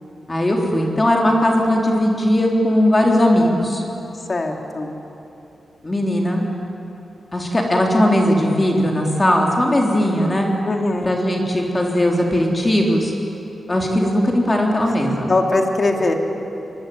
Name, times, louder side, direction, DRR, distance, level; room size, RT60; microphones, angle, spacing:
voice 1, 0.3-3.8 5.8-6.5 7.3-10.5 11.0-13.1 13.7-15.3, left 1 dB, 20° left, 0 dB, 3.5 m, -18 dB
voice 2, 4.3-5.0 10.6-11.1 15.3-16.1, left 2 dB, 35° left, 3 dB, 3.0 m, -21 dB
24.0 x 23.5 x 9.5 m, 2.9 s
wide cardioid pair, 110°, 0 cm